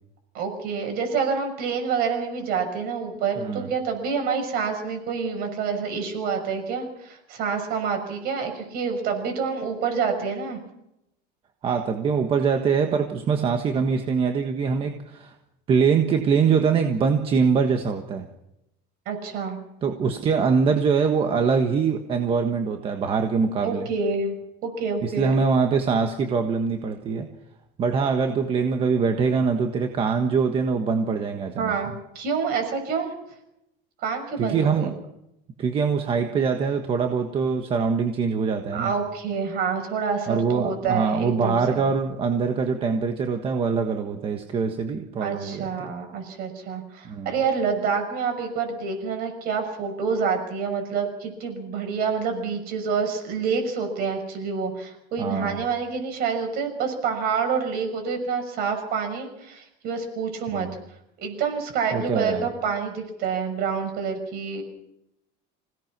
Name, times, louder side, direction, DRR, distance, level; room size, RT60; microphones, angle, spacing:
voice 1, 0.3-10.6 19.1-19.6 23.6-24.4 24.6-25.4 31.6-33.1 34.0-34.9 38.7-41.8 45.2-60.7 61.2-64.6, right 5 dB, 45° right, 5 dB, 6.4 m, -27 dB
voice 2, 3.4-3.7 11.6-15.3 15.7-18.3 19.8-23.9 25.0-27.3 27.8-31.7 34.4-34.9 35.6-38.9 40.3-45.9 47.0-47.3 55.2-55.6 60.5-60.7 61.9-62.5, right 5 dB, 25° right, 5 dB, 1.4 m, -23 dB
26.5 x 17.5 x 6.1 m, 0.84 s
cardioid pair, 180°, 21 cm